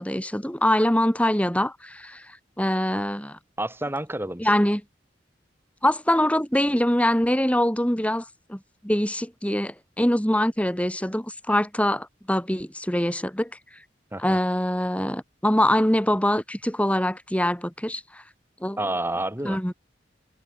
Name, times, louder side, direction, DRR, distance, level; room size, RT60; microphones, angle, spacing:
voice 1, 0.0-3.4 4.4-4.8 5.8-13.5 14.2-18.2 18.6-18.8 19.4-19.7, left 1 dB, 10° left, 6.2 m, -24 dB
voice 2, 3.6-4.5 14.1-14.4 18.8-19.6, right 1 dB, 15° right, 7.6 m, -29 dB
head